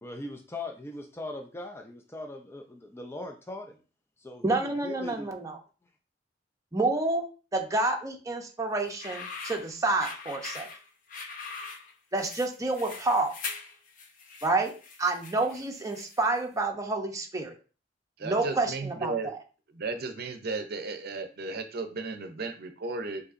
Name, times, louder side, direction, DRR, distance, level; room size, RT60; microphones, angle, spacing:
voice 1, 0.0-3.8 4.2-5.3, left 2 dB, 15° left, 3 dB, 0.4 m, -40 dB
voice 2, 4.4-5.6 6.7-7.3 7.5-10.7 12.1-13.3 14.4-14.7 15.0-17.6 18.2-19.3, right 2 dB, 20° right, 2 dB, 0.7 m, -28 dB
sound 1, 8.8-16.4, left 5 dB, 45° left, 0.7 m, -42 dB
voice 3, 18.2-19.3 19.7-23.2, right 3 dB, 60° right, 7 dB, 0.6 m, -34 dB
6.6 x 2.7 x 2.5 m, 0.36 s
head